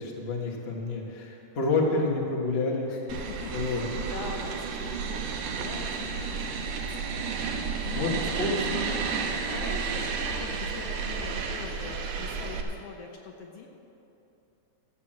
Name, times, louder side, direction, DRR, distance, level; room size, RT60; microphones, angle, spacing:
voice 1, 0.0-2.9 3.5-3.9 7.9-8.1 8.4-8.5, left 3 dB, 40° left, 0 dB, 0.8 m, -28 dB
voice 2, 2.9-6.8 7.2-13.7, left 4 dB, 65° left, 1 dB, 1.7 m, -43 dB
sound 1, 3.1-12.6, right 5 dB, 90° right, 2.5 m, -32 dB
13.0 x 7.6 x 7.5 m, 2.9 s
omnidirectional pair, 3.5 m